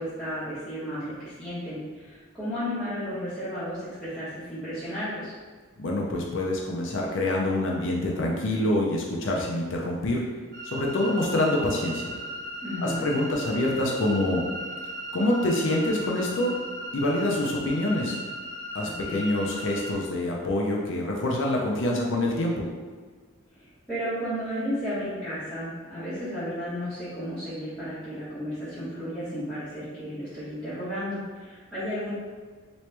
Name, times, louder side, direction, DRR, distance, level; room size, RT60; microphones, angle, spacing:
voice 1, 0.0-5.3 12.6-13.1 18.8-19.3 23.5-32.1, equal, 5° left, -15 dB, 1.0 m, -33 dB
voice 2, 5.8-10.2 10.6-12.2 12.8-14.4 15.1-16.5 16.9-18.2 18.7-22.7, left 1 dB, 60° left, -1 dB, 0.5 m, -26 dB
sound 1, 10.5-19.9, equal, 40° right, 1.0 m, -37 dB
3.0 x 3.0 x 3.3 m, 1.5 s
head